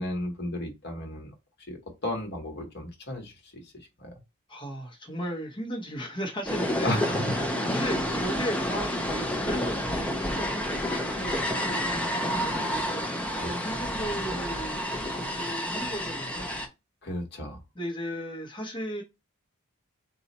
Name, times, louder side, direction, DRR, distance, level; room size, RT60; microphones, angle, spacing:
voice 1, 0.0-1.3 1.7-3.7 4.0-4.2 6.8-7.3 7.6-7.8 13.4-13.5 17.0-17.6, left 1 dB, 50° left, 1.1 m, -34 dB
voice 2, 4.5-6.9 7.7-14.8 15.1-16.5 17.7-19.0, equal, 20° left, 0.9 m, -36 dB
sound 1, 6.5-16.7, equal, 5° left, 0.5 m, -29 dB
4.0 x 2.4 x 4.0 m
head